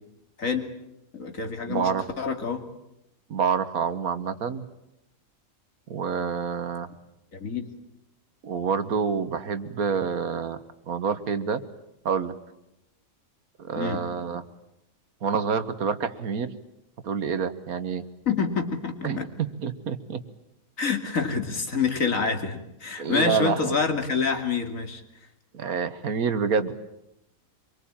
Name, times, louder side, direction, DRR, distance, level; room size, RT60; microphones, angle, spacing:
voice 1, 0.4-0.7 1.1-1.9 2.2-2.7 7.3-7.7 13.8-14.0 18.3-19.3 20.8-25.0, left 5 dB, 65° left, 6 dB, 2.9 m, -27 dB
voice 2, 1.7-2.1 3.3-4.7 5.9-6.9 8.4-10.6 10.9-11.6 12.1-12.3 13.6-14.4 15.2-16.5 17.0-18.1 19.0-20.2 23.0-23.7 25.5-26.7, right 6 dB, 80° right, 12 dB, 1.8 m, -27 dB
25.0 x 24.0 x 8.8 m, 0.85 s
omnidirectional pair, 1.5 m